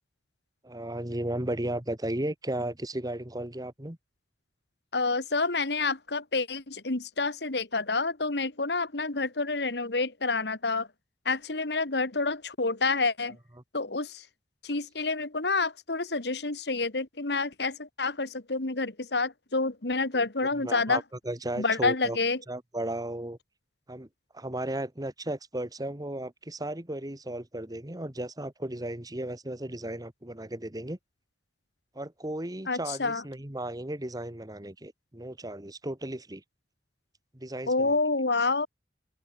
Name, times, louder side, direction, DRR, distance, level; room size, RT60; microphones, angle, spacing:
voice 1, 0.6-4.0 20.1-20.2 20.6-22.2 22.5-23.4 23.9-24.1 24.3-31.0 31.9-36.4 37.3-38.0, right 1 dB, 20° right, 1.9 m, -35 dB
voice 2, 4.9-10.9 11.3-13.4 13.7-14.2 14.6-21.0 21.6-22.4 32.7-33.2 37.7-38.7, left 3 dB, 65° left, 2.0 m, -28 dB
open air
head